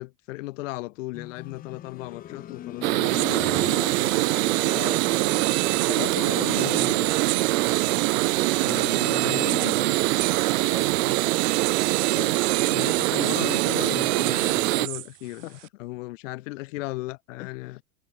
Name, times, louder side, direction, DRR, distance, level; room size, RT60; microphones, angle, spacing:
voice 1, 0.0-4.1 6.4-7.0 8.6-10.0 12.7-15.5 15.8-17.8, left 20 dB, 55° left, 1.6 m, -36 dB
sound 1, 1.1-11.9 13.3-13.4, left 12 dB, 20° left, 1.3 m, -43 dB
sound 2, 2.8-15.7, right 32 dB, 20° right, 0.4 m, -32 dB
sound 3, 2.8-14.9, right 19 dB, 65° right, 0.7 m, -24 dB
voice 2, 4.6-5.4 5.9-7.1 10.6-11.6 12.1-12.8 15.3-15.6 17.4-17.8, left 15 dB, 85° left, 1.6 m, -39 dB
supercardioid pair, 165°, 44 cm